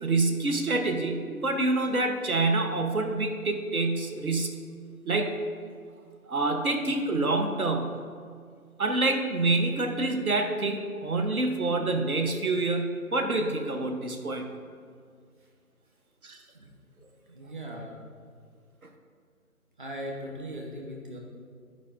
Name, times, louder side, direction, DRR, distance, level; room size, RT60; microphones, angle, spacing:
voice 1, 0.0-4.6 5.1-5.3 6.3-8.0 8.8-14.5 16.2-16.4, right 2 dB, 70° right, 4 dB, 1.0 m, -27 dB
voice 2, 17.3-17.9 19.8-21.2, equal, 35° right, -1 dB, 0.9 m, -39 dB
13.5 x 4.9 x 2.5 m, 2.1 s
figure-of-eight pair, 165°, 45 cm